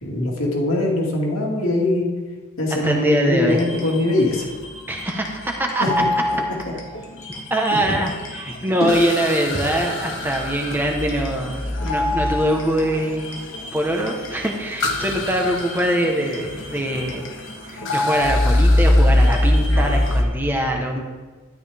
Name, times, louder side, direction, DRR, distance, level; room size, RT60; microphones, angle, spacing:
voice 1, 0.0-2.1 2.6-4.5 5.8-5.9 8.8-9.0, left 2 dB, 75° left, -2 dB, 2.3 m, -21 dB
voice 2, 2.8-3.6 4.9-5.8 7.5-13.3 13.7-17.2 17.7-21.0, right 1 dB, 10° right, 1 dB, 1.1 m, -23 dB
sound 1, 3.5-20.2, left 1 dB, 60° left, 1.4 m, -24 dB
12.5 x 10.5 x 3.5 m, 1.4 s
head